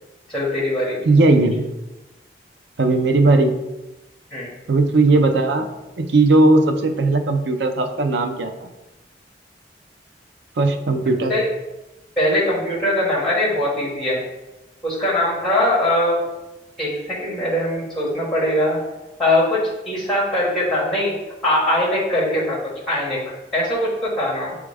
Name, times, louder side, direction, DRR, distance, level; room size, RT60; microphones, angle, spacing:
voice 1, 0.3-1.0 4.3-4.5 11.3-11.5 12.2-14.2 14.8-16.2 16.8-18.8 19.2-21.1 21.4-24.6, left 1 dB, ahead, -7 dB, 1.3 m, -21 dB
voice 2, 1.0-1.7 2.8-3.6 4.7-5.7 6.0-8.7 10.6-11.3, right 2 dB, 70° right, 6 dB, 0.5 m, -17 dB
6.8 x 2.3 x 3.3 m, 1.0 s
head